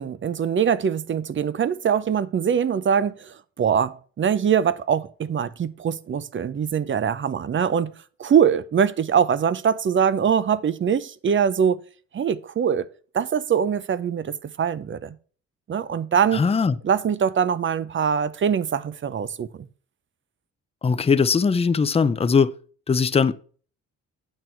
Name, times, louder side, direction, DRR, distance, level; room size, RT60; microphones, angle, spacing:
voice 1, 0.0-7.9 8.2-11.8 12.1-12.9 13.1-15.1 15.7-16.4 16.8-19.7, right 7 dB, 40° right, 0.7 m, -23 dB
voice 2, 16.3-16.8 20.8-22.5 22.9-23.3, left 5 dB, 20° left, 0.6 m, -20 dB
9.1 x 6.1 x 4.5 m
cardioid pair, 90°, 30 cm